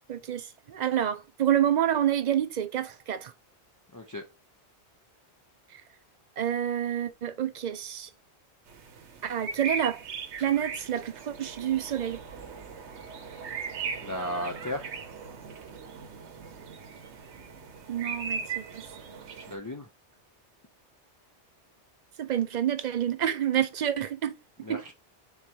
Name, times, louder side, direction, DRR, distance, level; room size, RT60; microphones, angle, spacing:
voice 1, 0.1-3.3 6.4-8.1 9.2-10.0 10.4-12.2 17.9-18.8 22.2-24.4 24.7-24.8, right 10 dB, 55° right, 0.5 m, -28 dB
voice 2, 3.9-4.2 14.0-14.9 19.5-19.9 24.6-24.9, left 1 dB, 25° left, 0.5 m, -35 dB
sound 1, 8.7-19.6, right 5 dB, 75° right, 1.1 m, -39 dB
4.6 x 3.8 x 2.8 m
omnidirectional pair, 1.2 m